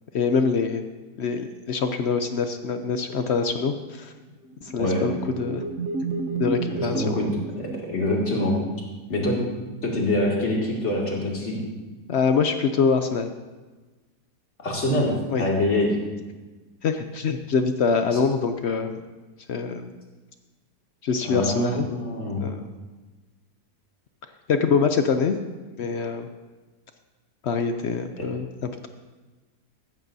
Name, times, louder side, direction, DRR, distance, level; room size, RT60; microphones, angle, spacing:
voice 1, 0.1-0.8 1.2-4.1 4.6-5.6 6.4-7.2 12.1-13.3 15.3-15.4 16.8-19.0 19.5-19.9 21.0-21.9 22.4-22.6 24.5-25.4 25.8-26.3 27.4-28.9, left 5 dB, 65° left, 7 dB, 0.6 m, -24 dB
sound 1, 4.4-8.4, right 3 dB, 55° right, 1.0 m, -31 dB
voice 2, 6.7-7.3 7.6-8.6 9.1-9.3 9.8-11.7 14.6-15.1 15.4-15.9 21.2-21.7 22.0-22.4 28.2-28.3, left 1 dB, 45° left, -3 dB, 2.6 m, -25 dB
14.5 x 13.5 x 2.7 m, 1.2 s
omnidirectional pair, 1.8 m